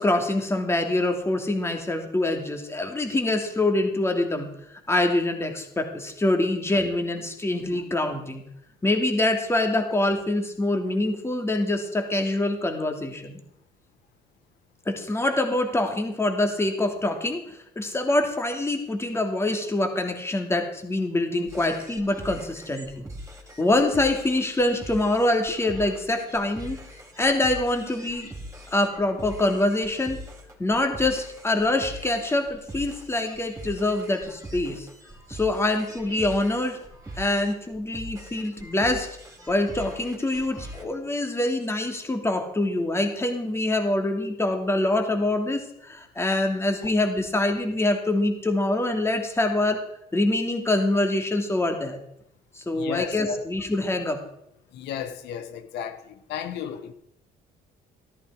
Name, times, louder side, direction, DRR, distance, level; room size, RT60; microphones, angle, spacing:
voice 1, 0.0-4.5 4.9-8.4 8.8-13.4 14.9-17.4 17.8-23.0 23.6-26.8 27.2-28.3 28.7-30.2 30.6-34.9 35.3-36.8 37.2-39.1 39.5-49.8 50.1-52.0 52.7-54.2, left 2 dB, 15° left, 2.6 m, -25 dB
sound 1, 21.5-40.9, right 1 dB, 15° right, 3.6 m, -42 dB
voice 2, 52.7-53.5 54.7-56.9, left 8 dB, 80° left, 1.2 m, -34 dB
14.5 x 13.0 x 4.8 m
cardioid pair, 110°, 17 cm